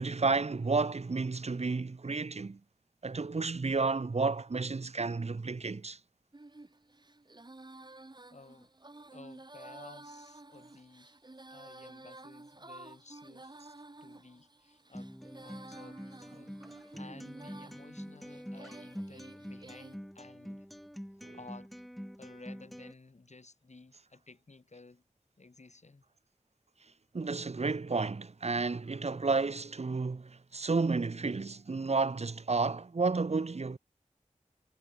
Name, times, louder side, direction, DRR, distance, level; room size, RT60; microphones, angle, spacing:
voice 1, 0.0-2.6 3.0-6.0 21.2-21.4 27.1-33.8, right 4 dB, 55° right, 1.2 m, -31 dB
Female singing, 6.3-20.0, right 2 dB, 35° right, 1.8 m, -52 dB
voice 2, 8.3-8.7 9.1-11.2 11.5-13.6 14.0-15.1 15.4-16.6 17.0-20.7 21.3-21.7 22.2-25.0 25.4-26.0, left 3 dB, 60° left, 7.2 m, -55 dB
Acoustic guitar, 14.9-22.9, equal, ahead, 1.3 m, -46 dB
wide cardioid pair, 50°, 13 cm